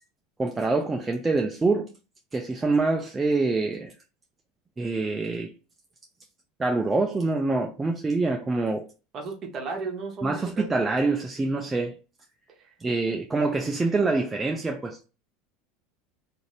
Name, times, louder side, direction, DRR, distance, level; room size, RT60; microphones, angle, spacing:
voice 1, 0.4-1.9 2.3-3.9 4.8-5.5 6.6-8.8 10.2-12.0 12.8-15.0, right 3 dB, 15° right, 0.4 m, -25 dB
voice 2, 9.1-10.7 12.6-12.7, right 4 dB, 35° right, 1.0 m, -34 dB
2.6 x 2.6 x 3.2 m
supercardioid pair, 125°, 0 cm